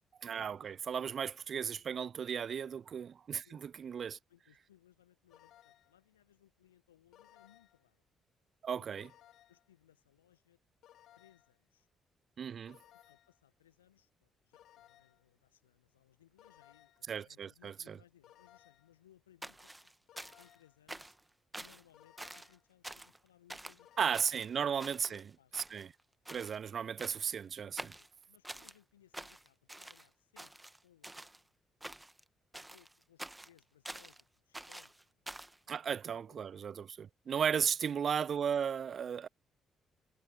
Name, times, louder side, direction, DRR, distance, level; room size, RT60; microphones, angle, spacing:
voice 1, 0.2-4.2 8.6-9.1 12.4-12.8 17.1-18.0 24.0-25.2 25.5-25.9 26.3-28.0 35.7-39.3, right 7 dB, 50° right, 0.3 m, -35 dB
voice 2, 3.4-8.0 8.7-9.1 9.5-10.6 11.2-11.9 12.9-19.8 20.4-21.1 21.6-24.3 24.6-25.6 27.9-31.5 32.5-36.5 37.8-37.9, left 11 dB, 85° left, 1.3 m, -67 dB
sound 1, 5.3-6.0 7.1-7.9 9.0-9.7 10.8-11.6 12.7-13.4 14.5-15.3 16.4-17.1 18.2-19.0 20.1-20.8 21.9-22.7 23.8-24.5, left 12 dB, 60° left, 2.9 m, -62 dB
sound 2, 19.4-20.6 20.9-21.2 21.5-21.8 22.2-22.5 22.8-23.2 23.5-23.8 24.1-25.2 25.5-26.0 26.3-26.6 27.0-27.4 27.8-28.8 29.1-30.1 30.4-31.4 31.8-32.2 32.5-34.2 34.5-35.6, right 1 dB, 10° right, 1.5 m, -47 dB
figure-of-eight pair, 40°, 0 cm